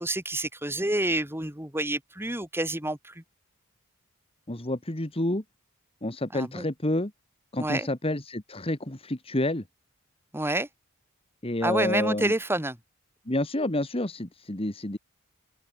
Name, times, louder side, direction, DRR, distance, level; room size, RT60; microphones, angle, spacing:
voice 1, 0.0-3.2 6.3-6.6 7.6-7.9 10.3-10.7 11.6-12.8, right 1 dB, 10° right, 4.6 m, -28 dB
voice 2, 4.5-5.4 6.0-7.1 7.5-9.6 11.4-12.3 13.3-15.0, left 1 dB, 25° left, 1.9 m, -29 dB
open air
head